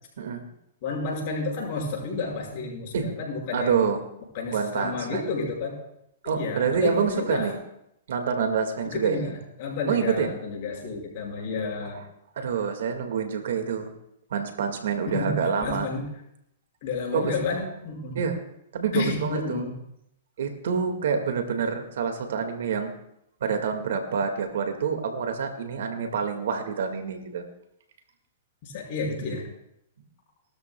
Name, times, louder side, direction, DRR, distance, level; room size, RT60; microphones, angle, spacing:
voice 1, 0.2-0.5 2.9-3.1 3.5-4.0 4.5-5.2 6.2-7.5 8.1-9.3 9.9-10.3 11.9-12.0 12.4-13.9 14.3-15.9 17.1-17.3 18.1-18.4 18.7-19.6 20.4-22.9 23.4-27.4, right 6 dB, 70° right, 6 dB, 2.0 m, -27 dB
voice 2, 0.8-3.9 4.3-5.7 6.4-7.5 8.8-12.0 15.1-16.1 16.8-18.2 18.9-19.7 28.6-29.4, left 3 dB, 55° left, -2 dB, 5.8 m, -31 dB
19.5 x 13.0 x 2.3 m, 0.78 s
hypercardioid pair, 130°, 0 cm